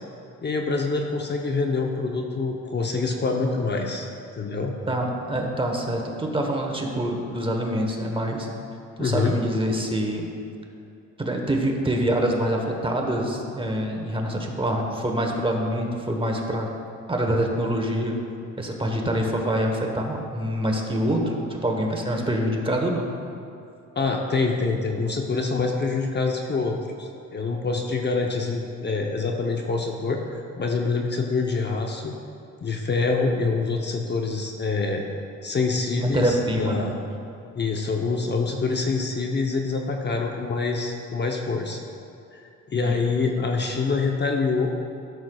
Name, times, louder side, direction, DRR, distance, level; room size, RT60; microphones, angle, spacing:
voice 1, 0.4-4.1 4.3-4.7 9.0-9.4 24.0-32.1 32.6-35.0 35.4-36.9 37.5-41.8 42.3-44.7, left 4 dB, 35° left, 1 dB, 0.8 m, -26 dB
voice 2, 4.9-8.5 9.0-10.3 11.2-16.7 17.1-18.2 18.6-23.0 36.0-36.9 42.7-43.0, right 1 dB, 15° right, 1 dB, 1.1 m, -25 dB
13.5 x 6.3 x 2.3 m, 2.7 s
cardioid pair, 90°, 30 cm